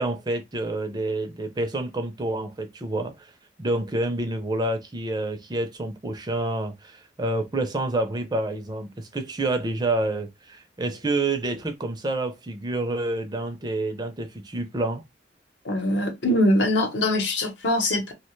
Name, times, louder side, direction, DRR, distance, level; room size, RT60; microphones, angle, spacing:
voice 1, 0.0-3.3 3.6-15.0, right 2 dB, 20° right, 0.4 m, -28 dB
voice 2, 15.6-18.1, left 1 dB, 70° left, 0.9 m, -22 dB
2.8 x 2.1 x 3.0 m
head